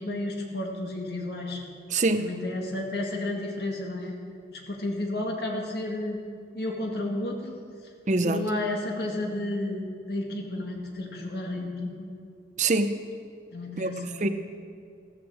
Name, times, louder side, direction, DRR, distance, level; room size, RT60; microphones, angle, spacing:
voice 1, 0.0-1.6 2.2-4.2 4.5-6.2 6.5-7.6 8.2-12.1 13.5-14.3, left 1 dB, 65° left, 0 dB, 2.2 m, -32 dB
voice 2, 1.9-2.3 8.1-8.5 12.6-13.0 13.8-13.9 14.2-14.3, right 2 dB, 40° right, 9 dB, 0.7 m, -24 dB
15.5 x 13.5 x 4.9 m, 2.4 s
head